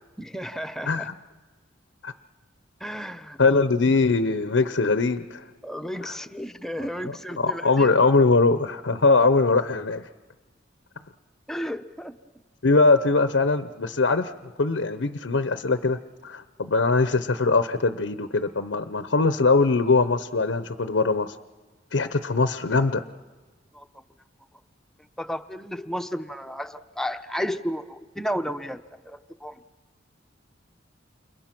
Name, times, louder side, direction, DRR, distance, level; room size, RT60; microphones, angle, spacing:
voice 1, 0.2-1.1 2.8-3.4 5.6-7.9 11.5-12.2 23.7-23.8 25.2-29.6, equal, 5° left, 8 dB, 0.8 m, -33 dB
voice 2, 3.4-5.4 6.0-6.1 6.8-6.9 7.4-10.1 12.6-14.3 14.6-21.4 21.9-23.0, left 3 dB, 85° left, 10 dB, 0.8 m, -21 dB
29.5 x 29.0 x 6.0 m, 1.3 s
head